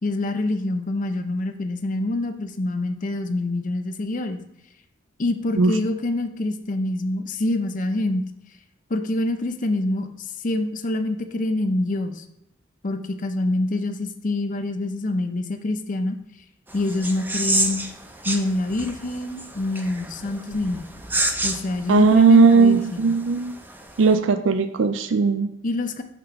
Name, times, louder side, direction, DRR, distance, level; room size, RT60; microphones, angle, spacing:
voice 1, 0.0-4.4 5.2-8.2 8.9-12.2 12.8-16.2 16.7-17.8 18.2-20.9 21.4-23.1 25.6-26.0, left 2 dB, 45° left, 7 dB, 0.6 m, -26 dB
sound 1, 16.7-24.2, right 2 dB, 10° right, 0.6 m, -30 dB
voice 2, 21.9-23.6 24.0-25.5, right 4 dB, 75° right, 8 dB, 0.4 m, -17 dB
6.7 x 3.6 x 5.8 m, 0.83 s
head